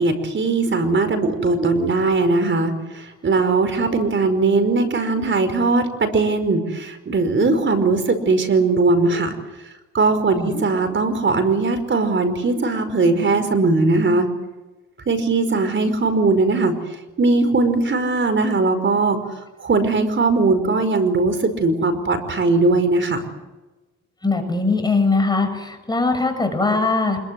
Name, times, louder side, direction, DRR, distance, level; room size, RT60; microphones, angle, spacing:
voice 1, 0.0-9.3 9.9-14.3 15.1-16.7 17.2-19.2 19.6-23.3, right 3 dB, 40° right, 9 dB, 5.2 m, -19 dB
voice 2, 24.2-27.2, left 3 dB, 15° left, 5 dB, 7.2 m, -20 dB
26.0 x 22.5 x 7.8 m, 1.1 s
cardioid pair, 90°, 30 cm